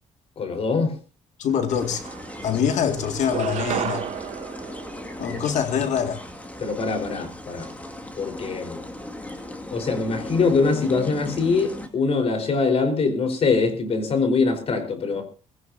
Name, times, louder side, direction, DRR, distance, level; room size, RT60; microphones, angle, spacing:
voice 1, 0.4-0.9 6.6-7.7 8.2-8.8 9.7-15.2, left 4 dB, 50° left, 4.5 m, -23 dB
voice 2, 1.4-2.1 2.4-4.1 5.2-6.3, left 7 dB, 75° left, 2.2 m, -24 dB
sound 1, 1.5-1.6 1.9-2.7 3.2-5.8, right 10 dB, 65° right, 1.2 m, -32 dB
sound 2, 1.7-11.9, left 1 dB, 10° left, 2.3 m, -37 dB
19.5 x 17.0 x 2.8 m
cardioid pair, 110°, 12 cm